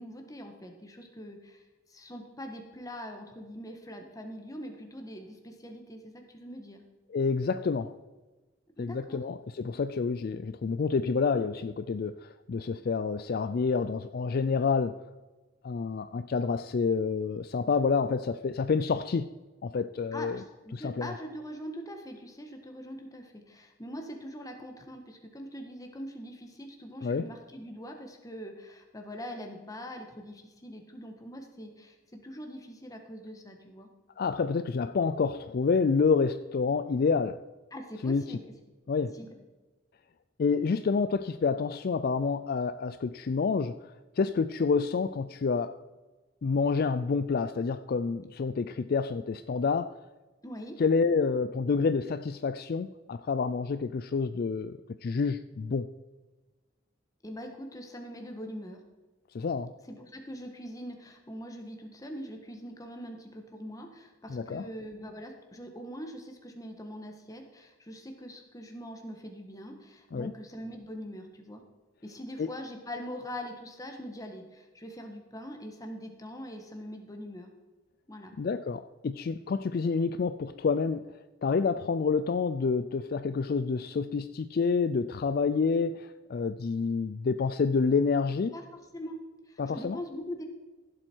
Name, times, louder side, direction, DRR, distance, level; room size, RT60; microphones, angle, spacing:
voice 1, 0.0-1.6 1.9-6.8 8.8-9.2 20.1-33.9 37.7-38.5 39.0-39.3 50.4-50.8 57.2-58.8 59.9-71.6 72.0-77.5 78.1-78.3 88.5-90.4, equal, 20° left, 1.5 m, -43 dB
voice 2, 7.1-7.9 8.8-15.0 15.6-19.3 19.6-20.4 20.7-21.1 27.0-27.3 34.2-37.4 38.0-38.4 38.9-39.2 40.4-45.8 46.4-50.0 50.8-55.9 59.3-59.7 64.3-64.7 70.1-70.3 72.4-72.5 78.4-88.5 89.6-90.0, left 5 dB, 50° left, 0.4 m, -28 dB
15.0 x 7.8 x 4.6 m
head